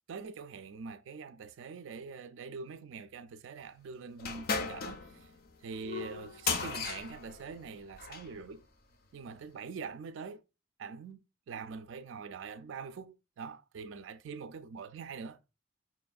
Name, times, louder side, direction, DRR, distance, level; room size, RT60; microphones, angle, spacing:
voice 1, 0.1-5.3 5.6-8.7 9.1-10.4 10.8-15.4, right 5 dB, 85° right, 0.4 m, -44 dB
sound 1, 4.2-8.3, left 5 dB, 55° left, 0.5 m, -36 dB
5.7 x 2.4 x 2.4 m
head